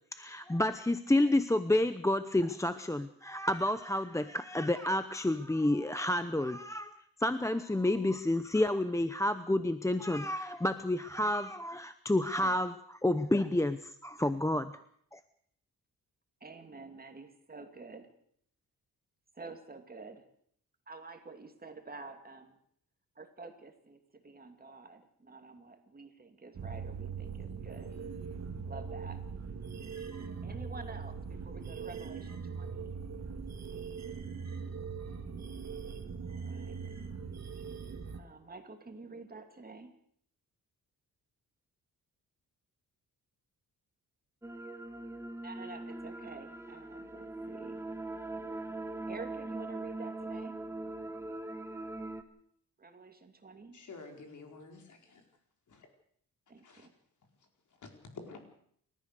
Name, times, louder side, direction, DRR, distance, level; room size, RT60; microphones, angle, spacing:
voice 1, 0.1-6.9 7.2-14.7 15.1-15.2, left 1 dB, 10° left, 11 dB, 0.7 m, -30 dB
voice 2, 16.4-18.1 19.3-20.2 20.9-22.6 23.2-27.9 28.6-29.2 30.4-32.9 36.2-36.8 38.1-39.9 45.4-47.8 49.1-50.6 52.8-53.8 56.5-56.9, right 3 dB, 25° right, 6 dB, 2.5 m, -49 dB
sound 1, 26.5-38.2, right 5 dB, 50° right, 2.4 m, -41 dB
sound 2, 44.4-52.2, right 2 dB, 10° right, 1.5 m, -41 dB
voice 3, 53.7-55.2 55.7-55.9 56.6-56.9 57.8-58.4, left 4 dB, 60° left, 4 dB, 4.5 m, -49 dB
29.0 x 14.0 x 6.7 m, 0.65 s
cardioid pair, 125°, 34 cm